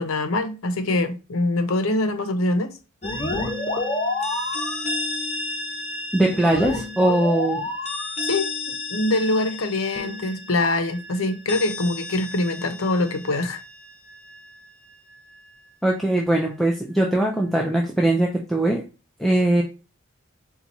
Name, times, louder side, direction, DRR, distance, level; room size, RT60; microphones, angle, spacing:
voice 1, 0.0-2.7 8.3-8.5 8.9-13.6, left 2 dB, 75° left, 0.7 m, -24 dB
sound 1, 3.0-14.6, left 2 dB, 30° left, 0.8 m, -30 dB
voice 2, 6.1-7.6 15.8-18.8 19.2-19.6, right 1 dB, ahead, 0.4 m, -21 dB
4.4 x 2.3 x 4.0 m
head